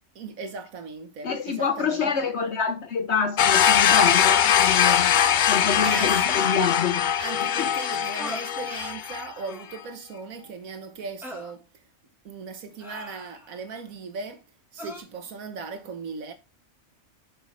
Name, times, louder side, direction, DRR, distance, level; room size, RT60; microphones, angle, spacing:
voice 1, 0.1-2.1 5.8-6.5 7.2-11.6 12.2-14.4 14.7-16.3, right 4 dB, 80° right, 1.6 m, -38 dB
voice 2, 1.2-5.2 5.5-7.1 7.6-7.7, left 6 dB, 60° left, 1.0 m, -26 dB
sound 1, 3.4-9.3, left 9 dB, 80° left, 0.4 m, -21 dB
sound 2, 8.2-8.5 9.4-9.8 11.2-11.5 12.8-13.6 14.8-15.0, left 1 dB, ahead, 1.9 m, -39 dB
6.5 x 6.4 x 3.2 m
omnidirectional pair, 1.4 m